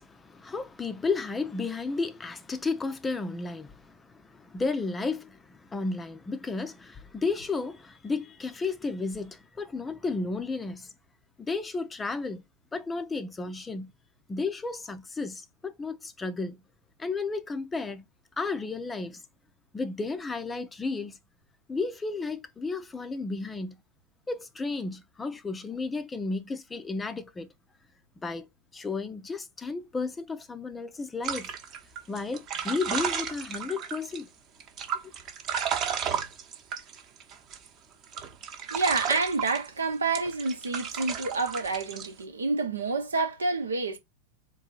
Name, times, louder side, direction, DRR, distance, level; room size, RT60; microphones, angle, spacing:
voice 1, 0.0-10.9 11.4-12.4 12.7-13.9 14.3-16.6 17.0-18.0 18.4-19.2 19.7-21.2 21.7-23.8 24.3-27.5 28.2-28.5 28.7-31.5 32.1-34.3, left 3 dB, 15° left, 0.5 m, -33 dB
sound 1, 31.2-34.2 34.6-37.7 38.0-39.7 40.1-42.1, right 7 dB, 40° right, 0.9 m, -33 dB
voice 2, 38.7-44.0, right 3 dB, 80° right, 0.8 m, -28 dB
3.7 x 2.6 x 3.8 m
figure-of-eight pair, 90°, 0 cm